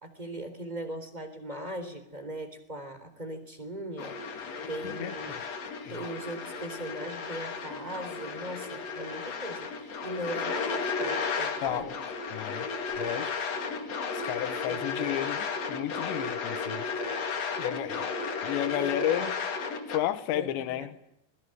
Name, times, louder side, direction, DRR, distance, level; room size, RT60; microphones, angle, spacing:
voice 1, 0.0-4.2 4.7-5.4 5.9-11.9 14.7-14.8 17.9-18.2 18.7-19.4 20.3-21.0, right 1 dB, 10° right, 10 dB, 3.0 m, -39 dB
sound 1, 4.0-20.0, left 4 dB, 45° left, 2.9 m, -34 dB
voice 2, 4.8-5.4 5.8-6.0 11.6-11.9 12.3-12.7 13.0-13.3 14.1-17.2 17.6-18.1 18.4-19.3 19.9-20.9, left 12 dB, 85° left, 12 dB, 3.5 m, -32 dB
27.0 x 21.5 x 7.8 m, 0.80 s
omnidirectional pair, 5.0 m